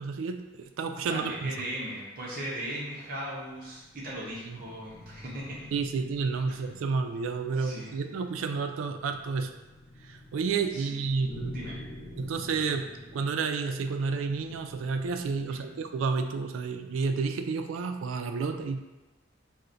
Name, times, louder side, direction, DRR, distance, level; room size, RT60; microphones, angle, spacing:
voice 1, 0.0-1.5 4.5-4.6 5.7-9.5 10.1-11.6 12.2-12.9 13.1-18.8, right 4 dB, 90° right, 6 dB, 0.3 m, -30 dB
voice 2, 1.0-5.6 6.5-6.7 7.5-7.9 10.7-11.0 11.5-11.8 15.5-15.7, right 1 dB, 45° right, -5 dB, 0.7 m, -38 dB
sound 1, 3.6-15.8, left 1 dB, 60° left, 0.6 m, -48 dB
5.6 x 2.1 x 2.5 m, 1.1 s
head